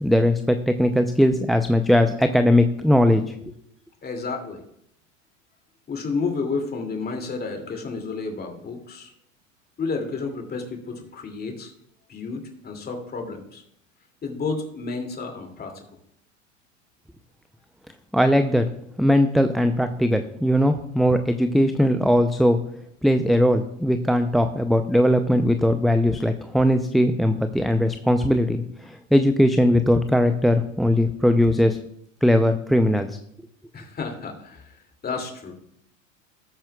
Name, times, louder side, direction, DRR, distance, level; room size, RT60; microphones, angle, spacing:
voice 1, 0.0-3.2 18.1-18.7 19.0-22.6 23.0-31.8 32.2-33.2, equal, ahead, 8 dB, 0.5 m, -19 dB
voice 2, 4.0-4.6 5.9-9.1 9.8-11.7 12.1-13.6 14.2-15.8 33.7-34.8 35.0-35.5, left 4 dB, 25° left, 3 dB, 2.6 m, -31 dB
19.5 x 8.7 x 2.4 m, 0.74 s
figure-of-eight pair, 85°, 40 cm